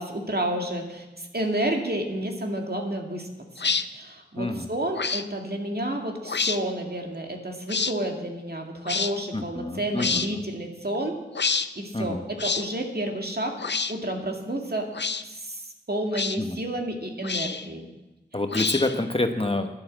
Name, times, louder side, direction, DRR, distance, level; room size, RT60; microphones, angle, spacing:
voice 1, 0.0-3.3 3.6-11.2 11.8-13.6 13.9-14.9 15.2-17.9, right 1 dB, 55° right, 2 dB, 2.1 m, -30 dB
sound 1, 3.6-3.8 4.9-5.2 6.2-6.6 7.7-7.9 8.8-9.1 10.0-10.3 11.3-11.7 12.4-12.6 13.6-13.9 14.9-15.2 16.1-16.4 17.2-17.7 18.5-19.0, left 5 dB, 65° left, 0.6 m, -27 dB
voice 2, 4.4-4.7 9.3-10.4 11.9-12.2 16.4-16.6 18.3-19.7, left 2 dB, 30° left, 6 dB, 1.1 m, -27 dB
11.5 x 11.0 x 7.5 m, 1.0 s
wide cardioid pair, 45°, 19 cm